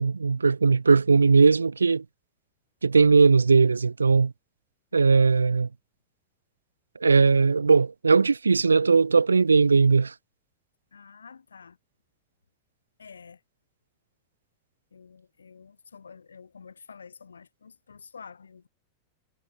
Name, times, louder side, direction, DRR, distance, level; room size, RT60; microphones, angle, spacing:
voice 1, 0.0-2.0 2.8-4.3 4.9-5.7 7.0-10.1, right 4 dB, 75° right, 0.7 m, -19 dB
voice 2, 10.9-11.8 13.0-13.4 14.9-18.7, left 6 dB, 75° left, 3.7 m, -48 dB
figure-of-eight pair, 90°, 0 cm